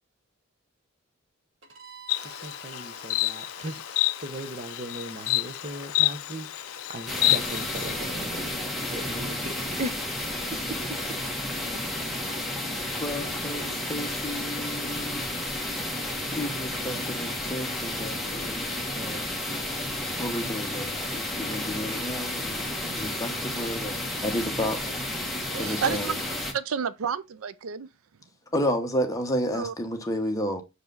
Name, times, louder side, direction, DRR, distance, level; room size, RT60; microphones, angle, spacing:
Bowed string instrument, 1.6-7.3, right 6 dB, 60° right, 1.3 m, -50 dB
Insect, 2.1-8.0, left 20 dB, 80° left, 0.3 m, -29 dB
voice 1, 2.4-11.0, right 1 dB, 35° right, 0.8 m, -38 dB
sound 1, 7.1-26.5, left 1 dB, ahead, 1.4 m, -32 dB
voice 2, 13.0-15.2 16.0-19.6 20.2-24.8 25.6-26.2 28.5-30.6, equal, 15° left, 1.1 m, -32 dB
voice 3, 25.5-26.1 26.5-27.9 29.5-29.7, right 7 dB, 80° right, 0.5 m, -30 dB
6.5 x 4.8 x 3.9 m
head